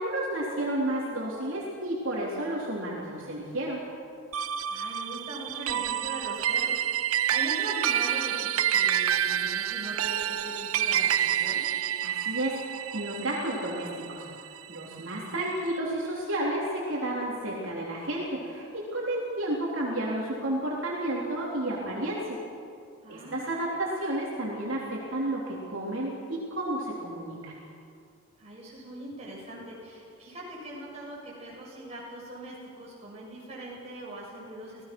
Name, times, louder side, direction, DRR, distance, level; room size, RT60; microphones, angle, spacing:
voice 1, 0.0-3.8 12.0-22.4 23.1-27.5, right 1 dB, 65° right, -4 dB, 3.9 m, -31 dB
sound 1, 4.3-14.9, right 10 dB, 85° right, 0.7 m, -28 dB
voice 2, 4.7-11.6 23.0-23.5 28.4-34.8, right 1 dB, 30° right, -5 dB, 7.1 m, -41 dB
27.5 x 18.5 x 6.3 m, 2.4 s
head